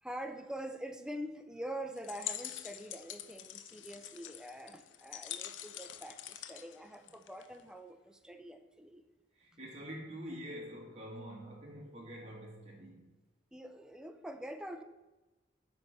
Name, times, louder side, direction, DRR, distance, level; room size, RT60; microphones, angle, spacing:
voice 1, 0.0-9.0 13.5-14.8, right 1 dB, 5° right, 0.5 m, -45 dB
sound 1, 2.0-7.6, left 11 dB, 85° left, 0.5 m, -45 dB
voice 2, 9.3-13.1, equal, 35° right, 2.0 m, -46 dB
7.3 x 4.3 x 6.5 m
head